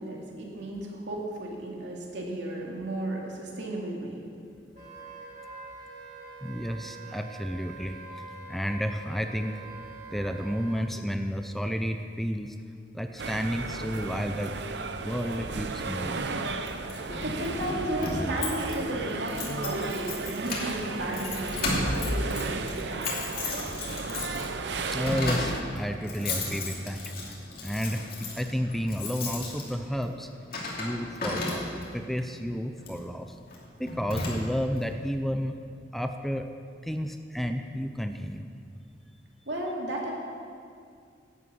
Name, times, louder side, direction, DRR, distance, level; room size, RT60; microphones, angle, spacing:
voice 1, 0.0-4.3 17.2-23.0 39.5-40.1, right 1 dB, 85° right, -2 dB, 2.6 m, -34 dB
Wind instrument woodwind instrument, 4.7-10.8, right 3 dB, 50° right, 3.1 m, -45 dB
voice 2, 6.4-8.0 8.5-9.6 10.1-12.6 12.9-14.5 15.0-16.3 24.9-27.4 27.6-30.3 30.8-33.4 33.8-35.6 35.9-36.5 36.8-38.5, equal, ahead, 6 dB, 0.5 m, -31 dB
sound 1, 13.2-25.6, right 3 dB, 70° right, 0.8 m, -34 dB
Keys jangling, 16.7-32.0 32.8-33.0 33.5-33.6 33.9-34.8, left 2 dB, 55° left, 2.8 m, -34 dB
11.5 x 9.3 x 7.9 m, 2.3 s
head